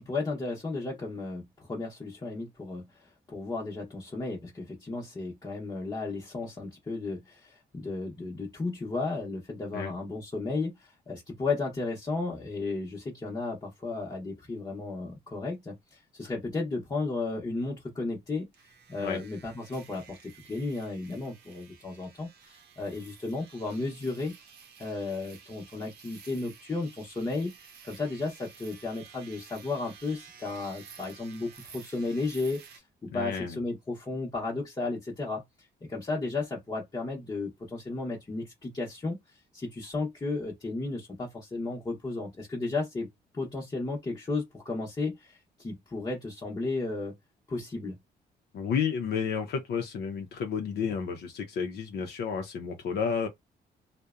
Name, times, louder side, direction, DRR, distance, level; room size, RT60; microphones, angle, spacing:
voice 1, 0.0-18.5 18.9-24.3 24.8-27.5 27.8-35.4 35.8-43.1 43.3-47.1 47.5-48.0, left 3 dB, 25° left, 0.8 m, -34 dB
sound 1, 18.5-32.8, right 7 dB, 75° right, 0.6 m, -52 dB
voice 2, 33.1-33.6 48.5-53.3, left 6 dB, 70° left, 0.5 m, -31 dB
2.6 x 2.1 x 2.4 m
cardioid pair, 85°, 17 cm